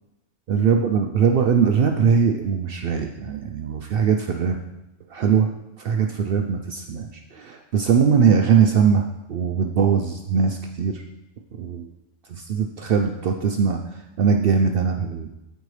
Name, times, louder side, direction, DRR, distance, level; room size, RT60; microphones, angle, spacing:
voice 1, 0.5-4.6 5.1-5.5 5.8-11.0 11.5-11.9 12.3-13.8 14.2-15.3, right 6 dB, 90° right, 4 dB, 0.5 m, -21 dB
13.5 x 4.5 x 3.2 m, 0.92 s
omnidirectional pair, 1.6 m